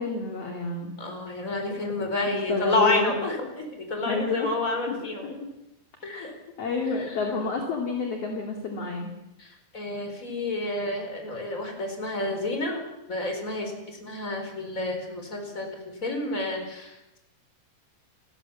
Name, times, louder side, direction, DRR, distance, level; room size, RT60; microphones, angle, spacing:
voice 1, 0.0-1.0 2.3-3.1 4.1-4.5 5.2-5.3 6.1-6.3 6.6-9.1, left 4 dB, 40° left, 1 dB, 2.5 m, -29 dB
voice 2, 1.0-5.3 6.0-6.3 6.9-7.4 9.4-17.2, left 2 dB, 15° left, 3 dB, 4.4 m, -30 dB
30.0 x 15.0 x 7.2 m, 0.93 s
omnidirectional pair, 5.8 m